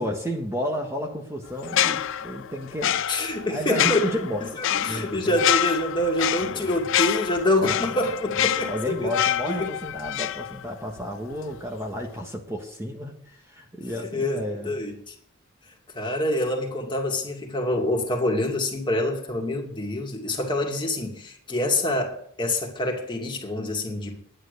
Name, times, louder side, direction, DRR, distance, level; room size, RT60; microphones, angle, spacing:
voice 1, 0.0-3.0 3.5-4.4 4.9-5.4 6.4-6.8 7.6-7.9 8.3-14.7, equal, 15° right, 1.6 m, -32 dB
sound 1, 1.6-11.0 11.3-11.5, left 10 dB, 65° left, 0.5 m, -27 dB
voice 2, 3.1-4.0 4.4-4.5 4.8-9.1 9.6-9.7 14.1-15.1 15.9-24.2, left 1 dB, 25° left, 2.5 m, -26 dB
11.0 x 10.5 x 6.7 m
head